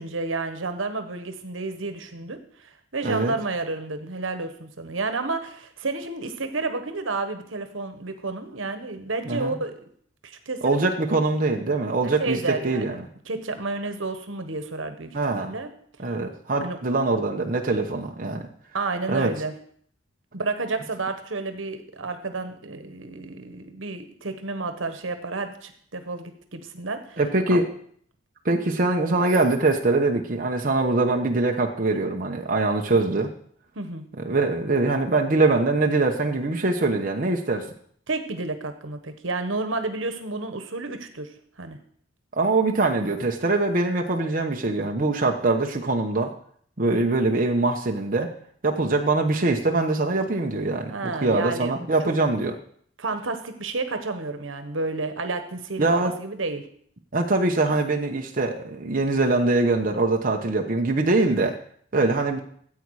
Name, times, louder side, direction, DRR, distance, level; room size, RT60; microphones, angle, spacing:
voice 1, 0.0-9.7 10.2-10.8 12.0-12.9 13.3-15.7 16.6-16.8 18.7-19.5 20.3-27.2 27.5-27.6 33.7-34.1 38.1-41.3 41.6-41.8 50.9-51.8 52.0-52.1 53.0-56.7, right 3 dB, 80° right, 8 dB, 1.3 m, -31 dB
voice 2, 3.0-3.3 9.3-9.6 10.6-13.0 15.1-15.5 16.0-18.5 19.1-19.3 27.2-27.7 28.4-33.3 34.2-37.7 42.4-46.3 46.8-48.3 48.6-52.5 55.8-56.1 57.1-61.5 61.9-62.4, right 3 dB, 45° right, 2 dB, 0.9 m, -23 dB
13.5 x 8.5 x 4.8 m, 0.62 s
head